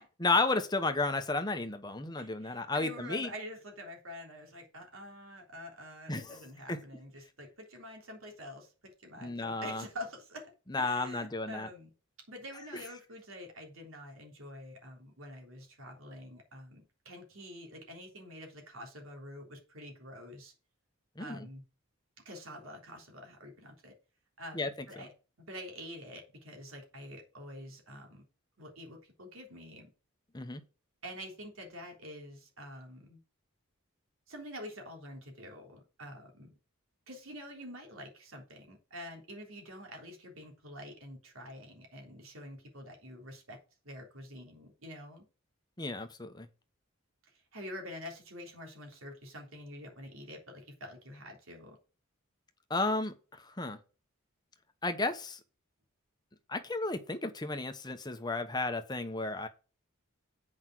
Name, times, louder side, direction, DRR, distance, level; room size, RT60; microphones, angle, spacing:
voice 1, 0.2-3.3 6.1-6.8 9.2-9.8 10.7-11.7 21.2-21.5 24.5-24.7 25.0-25.1 30.3-30.6 45.8-46.5 52.7-53.8 54.8-55.4 56.5-59.5, left 3 dB, 20° left, 1.0 m, -33 dB
voice 2, 2.2-8.7 9.0-11.9 12.3-20.5 21.2-21.6 22.3-23.9 24.4-25.1 25.4-28.2 28.6-29.9 31.0-33.2 34.3-36.5 37.1-43.6 43.8-45.2 47.5-51.8, equal, 75° right, 3.4 m, -47 dB
8.0 x 5.4 x 6.1 m
head